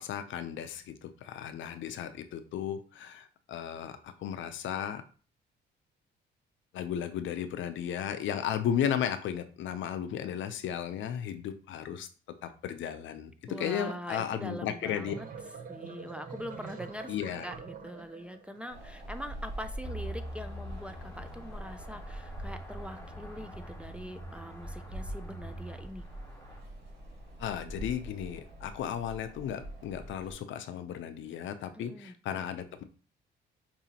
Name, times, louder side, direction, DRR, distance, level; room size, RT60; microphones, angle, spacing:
voice 1, 0.0-5.0 6.7-12.1 12.4-13.3 13.6-15.1 17.1-17.5 27.4-32.8, left 9 dB, 75° left, 9 dB, 0.6 m, -35 dB
voice 2, 13.5-15.3 15.7-17.1 17.4-26.1 31.7-32.1, equal, 5° right, 7 dB, 0.4 m, -43 dB
sound 1, 14.8-18.7, right 5 dB, 45° right, 0.7 m, -45 dB
Wind, 18.7-30.3, right 1 dB, 65° right, 2.2 m, -44 dB
sound 2, 19.8-26.6, equal, 10° left, 0.8 m, -44 dB
5.1 x 2.7 x 2.8 m, 0.38 s
cardioid pair, 90°, 20 cm